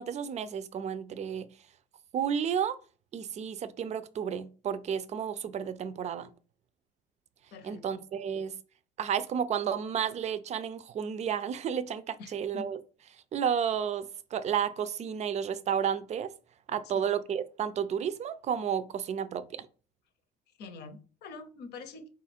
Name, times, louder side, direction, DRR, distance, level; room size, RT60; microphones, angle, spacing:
voice 1, 0.0-1.5 2.1-2.8 3.1-6.3 7.6-8.5 9.0-12.8 13.3-16.3 16.7-19.7, right 8 dB, 40° right, 0.4 m, -32 dB
voice 2, 7.5-8.0 12.2-12.7 16.9-17.0 20.6-22.1, left 4 dB, 75° left, 0.8 m, -45 dB
4.1 x 2.4 x 4.2 m
cardioid pair, 110°, 17 cm